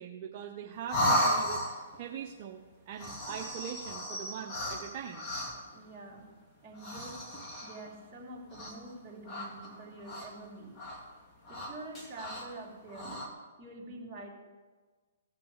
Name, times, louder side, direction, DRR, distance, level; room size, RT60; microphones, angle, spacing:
voice 1, 0.0-1.6 2.0-5.3, right 9 dB, 40° right, 2 dB, 0.8 m, -42 dB
sound 1, 0.9-2.0 2.9-5.7 6.7-7.9 8.5-9.0 9.3-10.5 10.8-11.0 11.4-12.5 12.9-13.3, equal, 25° left, 2.2 m, -34 dB
voice 2, 5.7-6.3 6.6-7.2 7.6-10.8 11.5-13.1 13.6-14.3, right 2 dB, 20° right, -5 dB, 3.0 m, -46 dB
17.0 x 6.1 x 4.8 m, 1.4 s
hypercardioid pair, 140°, 0 cm